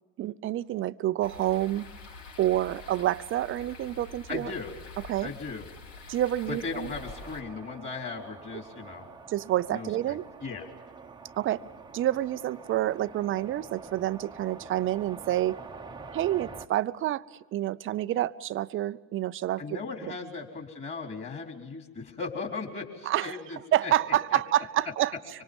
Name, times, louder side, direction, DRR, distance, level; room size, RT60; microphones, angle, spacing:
voice 1, 0.2-1.8 2.4-4.5 5.1-5.3 6.1-6.9 9.3-10.2 11.4-11.6 11.9-15.6 16.1-17.2 17.5-20.1 23.1-23.4 23.7-25.1, right 13 dB, 25° right, 15 dB, 0.6 m, -28 dB
sound 1, 1.2-7.4, left 3 dB, 70° left, 6.4 m, -46 dB
voice 2, 4.3-4.7 5.2-5.7 6.5-9.1 9.7-10.7 19.6-23.9 24.3-24.4, left 4 dB, 25° left, 2 dB, 4.2 m, -37 dB
sound 2, 7.0-16.7, right 4 dB, 10° right, 1.1 m, -46 dB
25.0 x 25.0 x 5.5 m, 1.2 s
hypercardioid pair, 100°, 49 cm